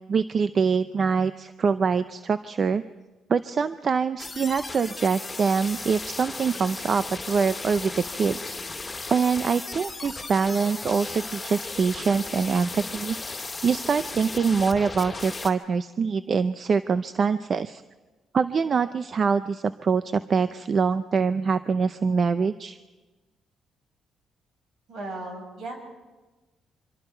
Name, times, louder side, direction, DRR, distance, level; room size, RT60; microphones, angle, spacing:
voice 1, 0.1-2.8 3.3-8.6 9.1-13.2 13.6-17.8 18.3-22.8, right 5 dB, 45° right, 12 dB, 0.6 m, -24 dB
sound 1, 4.2-15.5, left 3 dB, 20° left, 2.6 m, -36 dB
voice 2, 24.9-25.8, right 2 dB, 70° right, 2 dB, 6.4 m, -36 dB
25.5 x 25.0 x 4.5 m, 1.2 s
cardioid pair, 90°, 0 cm